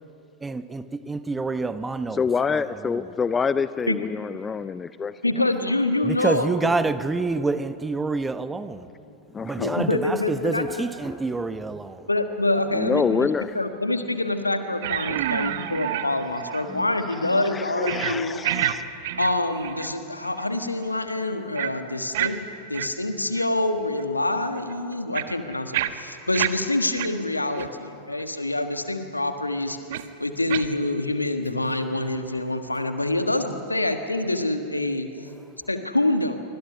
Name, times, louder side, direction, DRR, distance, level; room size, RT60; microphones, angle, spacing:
voice 1, 0.4-2.2 2.5-3.1 6.0-8.9 9.4-12.1 27.6-27.7, right 3 dB, 10° right, 0.9 m, -27 dB
voice 2, 2.1-5.2 9.3-9.9 12.7-13.6 15.1-15.7 16.7-16.9 17.1-18.8, left 5 dB, 15° left, 0.5 m, -27 dB
voice 3, 5.2-6.7 9.6-10.8 12.1-13.3 13.5-18.4 19.2-22.4 22.7-29.8 30.2-35.1 35.7-36.4, left 2 dB, 85° left, 1.5 m, -26 dB
sound 1, 14.8-16.7 17.0-17.2 17.8-18.2 18.4-18.8 19.0-19.9 20.2-20.4 21.6-21.7 22.1-22.3 22.7-22.9 23.4-23.5 24.0-24.1 24.6-26.5 26.9-27.1 27.5-27.7 28.2-28.3 29.9-30.0 30.5-30.7, right 13 dB, 55° right, 1.0 m, -28 dB
25.5 x 25.0 x 5.5 m
figure-of-eight pair, 90°, 0 cm